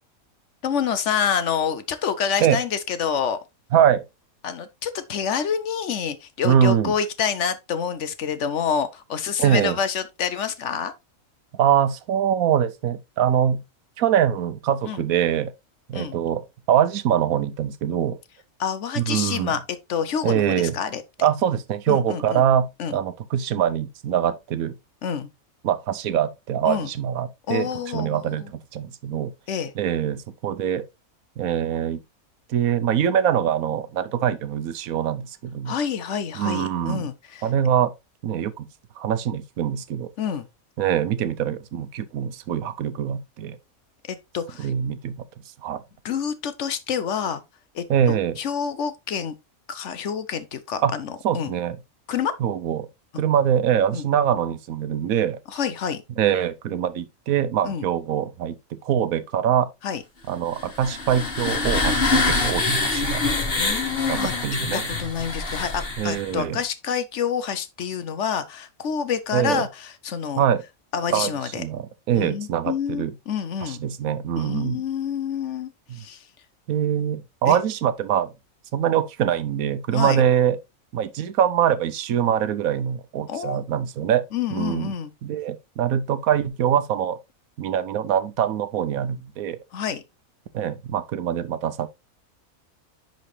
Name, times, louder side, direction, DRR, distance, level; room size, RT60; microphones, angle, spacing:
voice 1, 0.6-3.4 4.4-10.9 14.9-15.0 15.9-16.2 18.6-19.6 19.9-21.0 21.9-22.4 22.8-23.0 25.0-25.3 26.6-26.9 27.5-28.5 29.5-29.7 35.6-37.5 40.2-40.5 44.1-44.7 46.0-47.4 47.7-49.3 49.7-51.5 52.1-52.3 53.9-54.0 55.5-56.0 57.6-57.9 59.8-60.0 63.5-64.3 64.7-70.4 70.9-71.6 72.1-73.8 74.4-76.2 77.5-77.6 79.9-80.2 83.3-83.6 84.3-85.1 89.7-90.0, left 7 dB, 60° left, 1.0 m, -27 dB
voice 2, 3.7-4.0 6.4-6.9 9.4-9.8 11.5-13.6 14.0-15.5 15.9-18.2 19.0-19.6 20.2-20.7 21.2-24.7 25.6-29.3 29.8-30.8 31.4-32.0 32.5-35.8 36.3-37.1 37.4-37.9 38.2-38.7 39.0-40.1 40.8-43.6 44.6-45.2 45.6-45.8 47.9-48.4 50.8-50.9 51.2-51.8 52.4-52.9 53.2-55.4 56.2-59.7 60.3-63.2 64.1-64.8 66.0-66.6 69.3-69.6 70.4-70.6 71.1-71.3 71.6-73.1 73.6-74.8 75.9-76.0 76.7-78.3 78.7-80.6 80.9-84.2 84.5-84.9 85.2-87.2 87.6-89.6 90.5-91.9, right 9 dB, 80° right, 1.1 m, -23 dB
sound 1, 60.5-66.4, left 3 dB, 45° left, 1.6 m, -25 dB
10.5 x 4.0 x 3.2 m
omnidirectional pair, 1.5 m